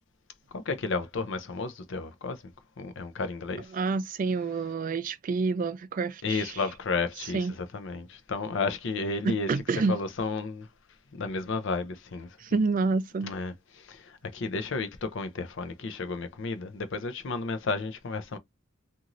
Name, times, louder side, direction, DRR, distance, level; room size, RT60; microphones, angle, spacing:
voice 1, 0.5-2.4 2.8-3.7 6.2-9.5 9.9-10.7 11.1-12.4 13.2-18.4, left 4 dB, 65° left, 0.6 m, -32 dB
voice 2, 3.7-6.5 7.3-7.5 9.5-10.0 12.4-13.3, right 4 dB, 45° right, 0.3 m, -28 dB
2.9 x 2.6 x 2.5 m
head